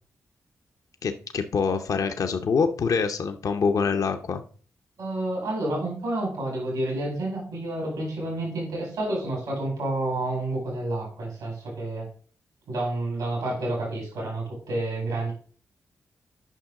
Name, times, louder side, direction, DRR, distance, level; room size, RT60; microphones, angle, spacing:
voice 1, 1.0-4.4, left 5 dB, 65° left, 6 dB, 0.6 m, -25 dB
voice 2, 5.0-12.1 12.7-15.3, right 2 dB, 90° right, -1 dB, 4.4 m, -29 dB
9.1 x 5.7 x 3.7 m, 0.42 s
supercardioid pair, 40°, 6 cm